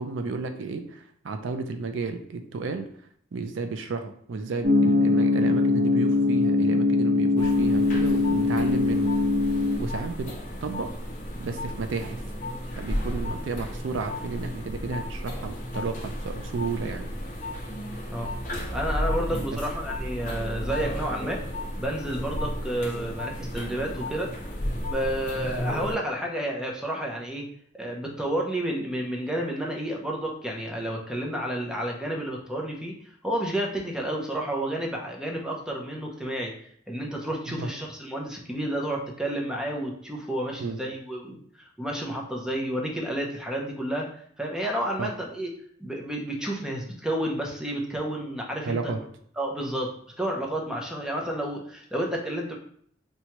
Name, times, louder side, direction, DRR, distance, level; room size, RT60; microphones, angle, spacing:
voice 1, 0.0-2.9 3.3-9.1 9.8-10.9 11.4-12.2 12.8-17.1 19.5-19.6 37.5-37.7 40.6-40.8 45.0-45.1 48.6-49.0, right 3 dB, 75° right, 7 dB, 0.4 m, -32 dB
sound 1, 4.6-9.8, left 3 dB, 50° right, 0.7 m, -22 dB
sound 2, 7.4-25.9, left 1 dB, 40° left, 0.7 m, -33 dB
voice 2, 18.7-21.4 21.8-24.4 24.9-27.5 27.7-32.9 33.2-36.5 36.9-44.1 44.4-45.5 45.8-48.9 49.4-52.6, right 1 dB, 5° right, -1 dB, 0.6 m, -30 dB
4.2 x 2.3 x 2.9 m, 0.62 s
head